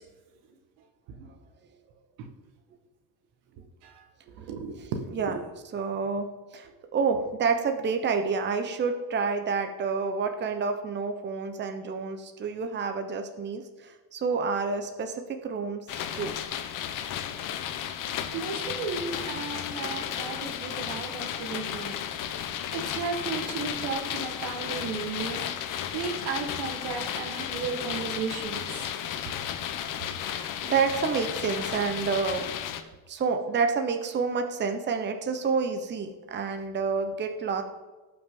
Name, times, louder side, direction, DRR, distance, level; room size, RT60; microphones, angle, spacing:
voice 1, 4.4-4.9 18.3-22.0 22.7-25.5 25.9-28.8 29.3-29.4, right 5 dB, 90° right, 5 dB, 1.9 m, -34 dB
voice 2, 5.1-5.4 5.7-16.4 30.2-32.5 33.1-37.6, right 5 dB, 30° right, 6 dB, 1.0 m, -29 dB
sound 1, 15.9-32.8, left 9 dB, 55° left, 1.0 m, -34 dB
17.5 x 5.9 x 3.9 m, 1.3 s
cardioid pair, 135°, 38 cm